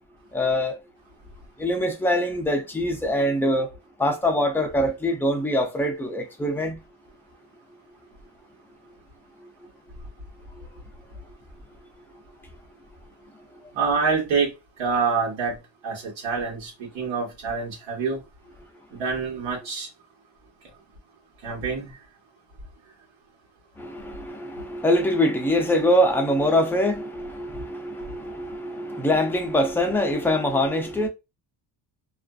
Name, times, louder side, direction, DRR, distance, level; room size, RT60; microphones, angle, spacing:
voice 1, 0.3-0.8 1.6-3.7 4.0-6.8 23.8-31.1, left 1 dB, 5° left, 0.3 m, -23 dB
voice 2, 13.7-14.5 14.8-15.5 15.8-18.2 18.9-19.9 21.4-21.9, right 5 dB, 70° right, 1.3 m, -26 dB
2.5 x 2.4 x 2.3 m
cardioid pair, 135°, 45 cm